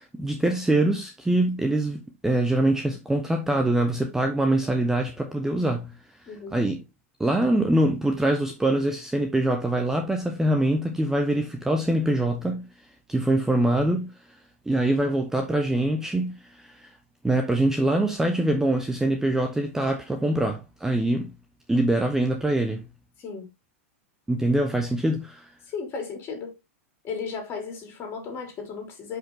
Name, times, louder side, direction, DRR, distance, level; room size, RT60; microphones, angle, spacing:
voice 1, 0.0-5.9 6.2-6.8 7.2-12.7 13.1-14.4 14.7-16.9 17.2-21.3 21.7-22.9 24.3-25.5, right 1 dB, 5° right, 0.9 m, -24 dB
voice 2, 25.6-26.6 27.0-29.2, left 5 dB, 30° left, 3.5 m, -35 dB
5.8 x 5.5 x 3.9 m
hypercardioid pair, 125°, 7 cm